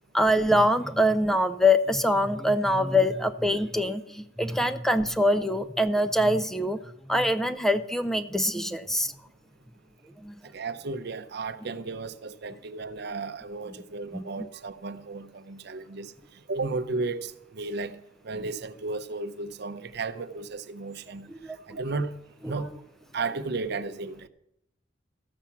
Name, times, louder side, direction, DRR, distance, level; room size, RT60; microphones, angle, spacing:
voice 1, 0.1-6.8 7.1-9.1 10.2-10.3 14.1-14.5 21.4-21.6, left 1 dB, ahead, 0.4 m, -24 dB
voice 2, 10.5-16.1 16.5-18.0 18.2-21.3 21.7-22.1 22.5-22.7 23.1-24.3, right 3 dB, 60° right, 0.6 m, -34 dB
14.0 x 5.8 x 7.1 m
head